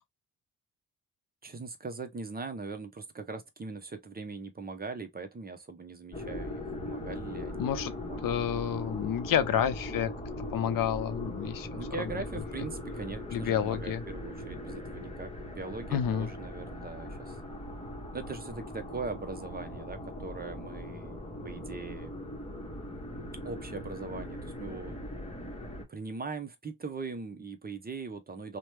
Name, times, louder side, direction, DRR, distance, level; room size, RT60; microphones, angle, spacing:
voice 1, 1.4-8.4 11.7-17.4 18.1-22.1 23.4-24.9 25.9-28.6, right 4 dB, 25° right, 0.6 m, -41 dB
sound 1, 6.1-25.8, left 1 dB, 15° left, 1.1 m, -40 dB
voice 2, 7.6-7.9 8.2-10.1 10.5-12.1 13.3-14.0 15.9-16.3, left 9 dB, 60° left, 0.6 m, -29 dB
2.9 x 2.2 x 3.2 m
cardioid pair, 70°, 38 cm